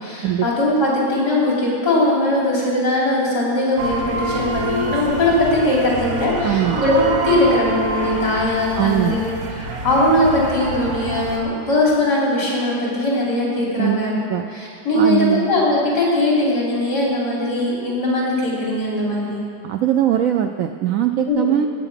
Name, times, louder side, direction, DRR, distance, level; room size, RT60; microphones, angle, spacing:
voice 1, 0.0-6.9 7.2-9.3 9.6-14.1 14.5-19.4 21.3-21.5, left 1 dB, 65° left, -5 dB, 4.3 m, -20 dB
sound 1, 3.8-11.4, right 1 dB, 60° right, 1.6 m, -26 dB
voice 2, 6.4-6.8 8.8-9.2 13.8-14.4 15.0-15.5 19.6-21.7, right 10 dB, 75° right, 7 dB, 0.8 m, -20 dB
16.0 x 9.1 x 5.8 m, 2.3 s
omnidirectional pair, 1.9 m